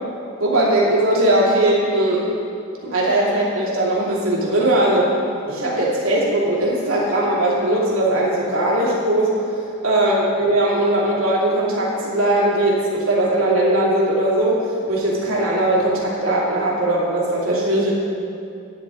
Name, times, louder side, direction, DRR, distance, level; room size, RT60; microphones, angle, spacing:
voice 1, 0.4-2.3 2.8-5.1 5.5-9.4 9.8-14.6 14.9-17.9, right 1 dB, 70° right, -5 dB, 2.7 m, -19 dB
12.5 x 9.6 x 3.9 m, 2.6 s
head